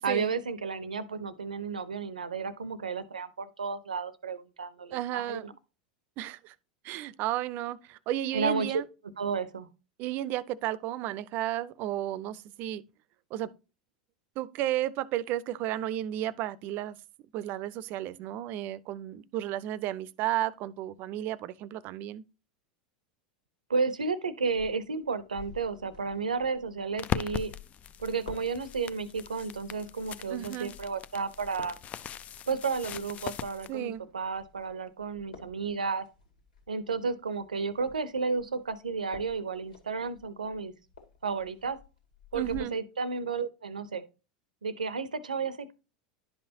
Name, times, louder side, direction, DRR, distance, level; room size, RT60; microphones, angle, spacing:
voice 1, 0.0-5.5 8.3-8.8 9.2-9.7 23.7-27.5 28.0-31.8 32.5-36.1 36.7-40.7 41.2-41.8 42.3-44.0 44.6-45.7, right 4 dB, 90° right, 0.7 m, -32 dB
voice 2, 4.9-5.5 6.2-6.5 6.8-8.9 10.0-12.8 13.3-13.5 14.4-17.0 17.3-22.2 30.3-30.7 33.7-34.1 42.3-42.8, right 13 dB, 50° right, 0.5 m, -33 dB
sound 1, 24.5-42.6, left 5 dB, 90° left, 2.6 m, -53 dB
sound 2, 27.0-33.7, left 10 dB, 35° left, 0.5 m, -39 dB
11.0 x 5.6 x 2.8 m
hypercardioid pair, 90°, 4 cm